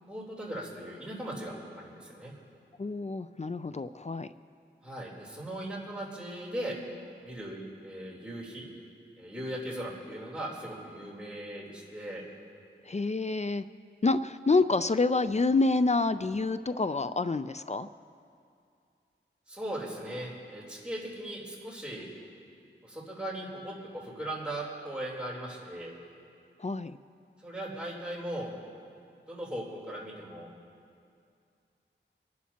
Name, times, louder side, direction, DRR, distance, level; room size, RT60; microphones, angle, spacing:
voice 1, 0.1-2.3 4.8-6.8 7.2-8.7 9.2-12.2 19.5-22.1 22.8-25.9 27.4-28.5 29.3-30.5, right 1 dB, 5° right, -6 dB, 3.5 m, -38 dB
voice 2, 2.8-4.3 12.9-13.6 14.0-17.9 26.6-27.0, left 3 dB, 35° left, 12 dB, 0.4 m, -27 dB
27.0 x 11.5 x 2.9 m, 2.4 s
wide cardioid pair, 55°, 21 cm